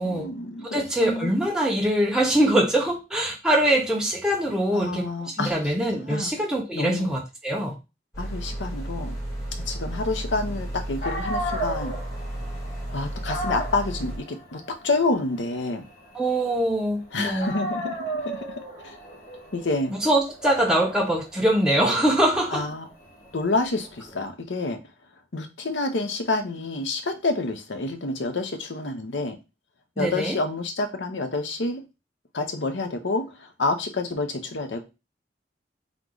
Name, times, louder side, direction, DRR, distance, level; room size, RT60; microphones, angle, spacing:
voice 1, 0.0-1.3 4.7-5.6 5.9-6.3 6.7-7.1 8.2-9.1 9.6-11.9 12.9-15.8 17.1-18.6 18.8-18.9 19.5-19.9 22.5-22.9 23.3-24.8 25.3-29.4 30.0-31.8 32.3-33.2 33.6-34.8, left 3 dB, 90° left, 7 dB, 0.8 m, -28 dB
voice 2, 0.6-7.7 16.1-17.5 19.9-22.7 30.0-30.4, right 1 dB, 5° right, -1 dB, 0.7 m, -23 dB
sound 1, 8.1-14.2, right 1 dB, 15° left, 1.8 m, -33 dB
Dog, 10.7-10.8 11.0-17.0 17.4-24.2, right 1 dB, 50° left, 1.5 m, -35 dB
3.7 x 3.0 x 3.8 m, 0.28 s
head